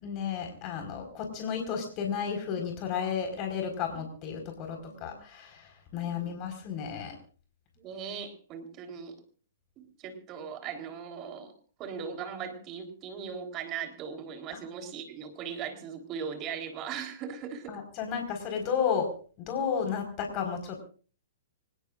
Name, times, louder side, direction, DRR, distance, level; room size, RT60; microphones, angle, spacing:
voice 1, 0.0-7.1 17.7-19.1 19.4-20.8, left 7 dB, 35° left, 4 dB, 4.7 m, -33 dB
voice 2, 4.6-5.1 5.9-6.4 7.8-9.2 9.8-11.5 11.8-17.8, right 7 dB, 30° right, 6 dB, 3.8 m, -39 dB
25.5 x 20.0 x 2.5 m, 0.41 s
hypercardioid pair, 115°, 0 cm